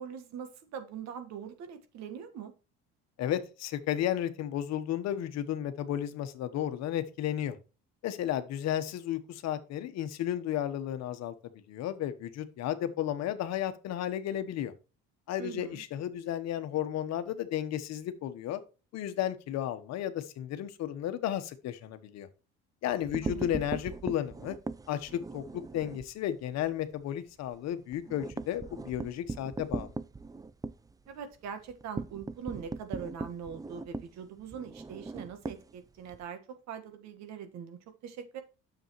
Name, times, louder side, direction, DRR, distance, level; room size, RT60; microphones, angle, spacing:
voice 1, 0.0-2.5 15.4-15.8 23.2-23.7 31.1-36.4 36.7-38.4, right 7 dB, 65° right, 9 dB, 1.6 m, -42 dB
voice 2, 3.2-7.6 8.0-11.3 11.7-14.7 15.3-18.6 18.9-22.3 22.8-24.6 24.9-29.9, left 11 dB, 65° left, 11 dB, 1.2 m, -33 dB
sound 1, 22.9-26.1 26.5-26.7 27.0-27.1 27.4-36.3, right 3 dB, 15° right, 0.4 m, -39 dB
9.2 x 7.1 x 3.1 m, 0.32 s
supercardioid pair, 90°, 29 cm